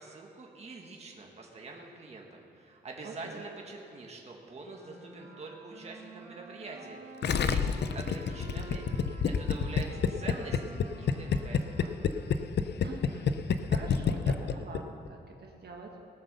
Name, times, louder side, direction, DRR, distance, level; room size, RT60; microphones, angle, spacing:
voice 1, 0.0-12.1, right 3 dB, 35° right, 0 dB, 1.5 m, -45 dB
voice 2, 3.0-3.4 12.8-13.4 13.7-15.9, right 3 dB, 65° right, 1 dB, 1.6 m, -45 dB
Wind instrument woodwind instrument, 4.6-12.9, right 2 dB, 80° right, 2.7 m, -50 dB
Gurgling, 7.2-14.8 15.1-15.2, left 6 dB, 70° left, 0.6 m, -28 dB
18.5 x 7.7 x 6.7 m, 2.6 s
wide cardioid pair, 155°, 18 cm